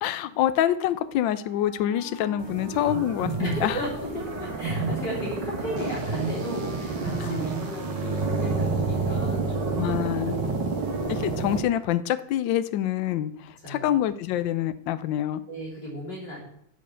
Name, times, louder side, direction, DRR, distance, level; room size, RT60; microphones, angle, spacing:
voice 1, 0.0-3.8 7.2-7.3 9.8-10.4 11.1-15.4, left 11 dB, 70° left, 14 dB, 1.2 m, -26 dB
Wind instrument woodwind instrument, 1.4-9.7, right 1 dB, 25° right, 1.8 m, -44 dB
sound 1, 2.4-11.6, right 3 dB, 55° right, 2.3 m, -29 dB
voice 2, 3.4-10.7 13.6-13.9 15.5-16.4, equal, 50° left, -5 dB, 4.2 m, -35 dB
9.7 x 5.3 x 6.9 m, 0.70 s
omnidirectional pair, 2.4 m